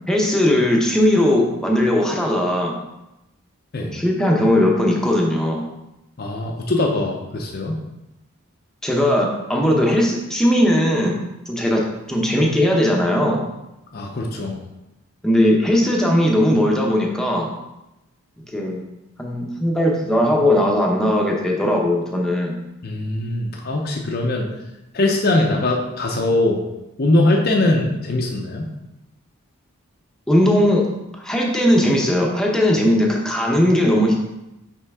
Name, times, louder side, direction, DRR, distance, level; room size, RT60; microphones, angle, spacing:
voice 1, 0.1-2.7 3.8-5.7 8.8-11.2 11.5-13.4 15.2-17.5 18.5-18.8 19.2-22.6 30.3-30.9 31.2-34.2, left 1 dB, 5° left, -2 dB, 0.7 m, -18 dB
voice 2, 6.2-7.8 13.9-14.6 22.8-24.5 24.9-26.6 27.0-28.7, left 2 dB, 45° left, 0 dB, 0.6 m, -21 dB
5.5 x 5.1 x 3.5 m, 0.94 s
head